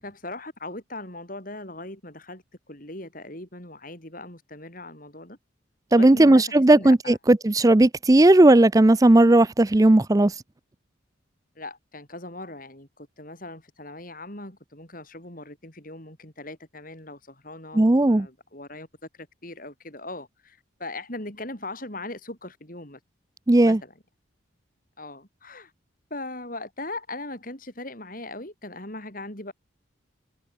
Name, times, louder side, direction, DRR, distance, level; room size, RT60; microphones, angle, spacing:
voice 1, 0.0-5.4 5.9-7.2 11.6-18.9 19.2-23.0 23.6-23.9 25.0-25.7 26.1-29.5, left 2 dB, 45° left, 5.5 m, -39 dB
voice 2, 5.9-10.3 17.7-18.3 23.5-23.8, right 1 dB, 15° right, 0.4 m, -16 dB
head